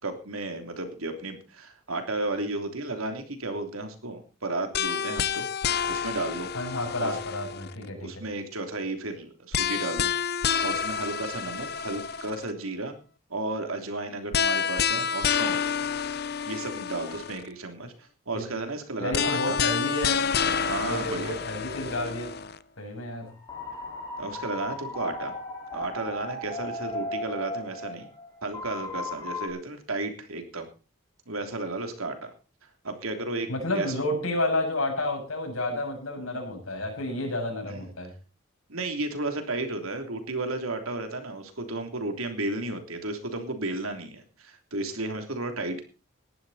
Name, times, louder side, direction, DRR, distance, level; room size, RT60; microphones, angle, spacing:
voice 1, 0.0-5.4 5.9-6.5 7.0-7.1 8.0-10.1 10.6-12.9 13.3-15.7 16.4-17.9 18.3-19.6 20.7-21.4 24.2-25.3 25.7-28.1 28.4-30.7 31.3-32.3 32.8-33.9 38.7-45.8, right 2 dB, 90° right, 6 dB, 3.2 m, -33 dB
sound 1, 4.7-7.9 9.5-12.5 14.3-17.5 19.1-22.6, left 7 dB, 50° left, 0.7 m, -28 dB
voice 2, 6.5-8.2 18.3-18.5 19.0-20.2 20.8-22.3 22.8-23.3 33.5-38.1, left 1 dB, 85° left, 2 dB, 7.4 m, -30 dB
sound 2, 23.2-29.5, left 2 dB, 15° left, 4.7 m, -36 dB
17.5 x 12.0 x 4.3 m, 0.36 s
head